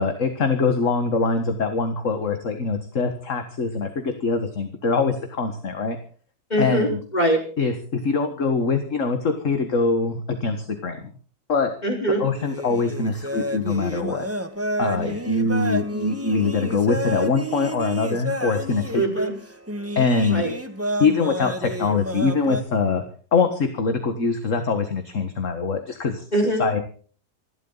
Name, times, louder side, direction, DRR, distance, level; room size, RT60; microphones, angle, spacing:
voice 1, 0.0-6.0 6.6-7.0 7.6-11.0 11.5-11.7 12.2-14.3 14.8-19.0 20.0-20.4 21.0-23.0 23.3-26.2 26.6-26.8, left 4 dB, 45° left, 7 dB, 2.0 m, -23 dB
voice 2, 6.5-7.4 11.8-12.2 15.0-15.2 18.9-19.3 20.3-20.5 26.3-26.7, right 1 dB, 25° left, 2 dB, 5.2 m, -22 dB
sound 1, 12.3-22.6, right 1 dB, 10° right, 1.3 m, -30 dB
27.0 x 12.0 x 4.1 m, 0.42 s
omnidirectional pair, 1.8 m